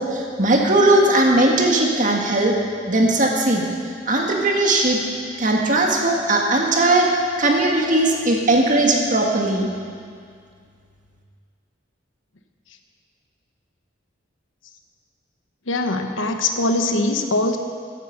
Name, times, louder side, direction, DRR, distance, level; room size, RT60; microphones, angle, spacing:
voice 1, 0.0-2.6 2.9-3.6 4.1-5.0 5.4-9.7, right 2 dB, 40° right, 0 dB, 1.8 m, -18 dB
voice 2, 15.7-17.6, left 2 dB, 90° left, 5 dB, 1.1 m, -22 dB
14.5 x 10.0 x 5.9 m, 2.1 s
head